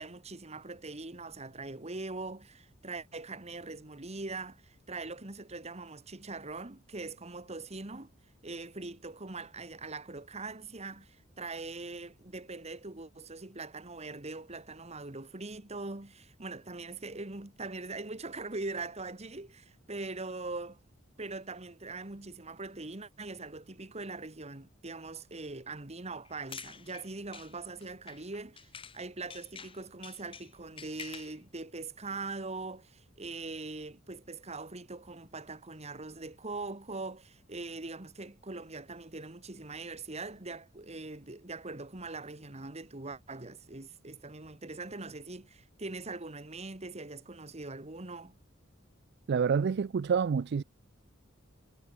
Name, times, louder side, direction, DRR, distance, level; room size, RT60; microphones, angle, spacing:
voice 1, 0.0-8.1 8.4-20.8 21.2-48.4, right 3 dB, 30° right, 1.9 m, -42 dB
sound 1, 26.2-29.0 29.3-31.4, left 6 dB, 25° left, 1.2 m, -48 dB
voice 2, 49.3-50.6, right 6 dB, 55° right, 0.4 m, -27 dB
head